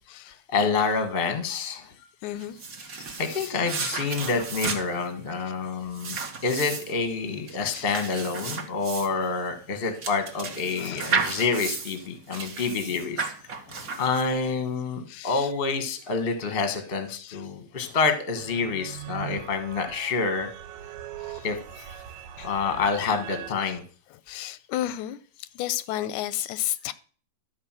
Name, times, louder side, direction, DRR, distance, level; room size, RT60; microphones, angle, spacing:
voice 1, 0.3-1.9 3.2-6.2 6.4-13.3 14.0-20.5 21.4-21.9 22.4-23.8, left 4 dB, 35° left, 0.9 m, -27 dB
voice 2, 2.2-2.6 3.3-3.6 4.2-4.3 7.6-7.9 10.8-11.1 13.7-14.0 15.1-15.5 17.1-17.4 17.8-17.9 21.2-21.5 22.4-22.5 24.3-25.2 25.6-26.9, left 13 dB, 85° left, 2.1 m, -33 dB
sound 1, 2.4-14.5, right 5 dB, 50° right, 1.1 m, -33 dB
sound 2, 18.4-23.5, right 11 dB, 80° right, 2.1 m, -41 dB
12.5 x 5.0 x 7.4 m
omnidirectional pair, 3.3 m